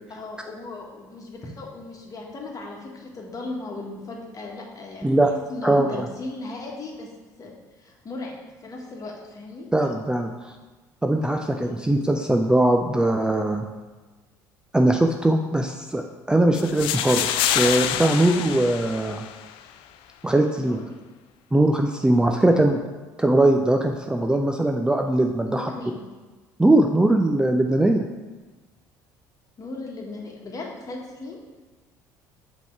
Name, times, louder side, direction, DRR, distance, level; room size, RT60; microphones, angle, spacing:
voice 1, 0.1-5.1 5.5-7.1 7.4-8.3 8.6-9.7 11.6-11.8 20.6-20.8 25.5-26.0 29.6-31.4, left 2 dB, 35° left, -1 dB, 1.5 m, -37 dB
voice 2, 9.7-10.5 11.0-13.6 14.7-19.2 20.2-20.8 21.5-22.8 23.2-25.7 26.6-28.0, right 1 dB, 10° right, 3 dB, 0.4 m, -20 dB
sound 1, 16.5-19.6, left 11 dB, 65° left, 0.4 m, -26 dB
5.9 x 3.6 x 4.6 m, 1.2 s
hypercardioid pair, 65°, 10 cm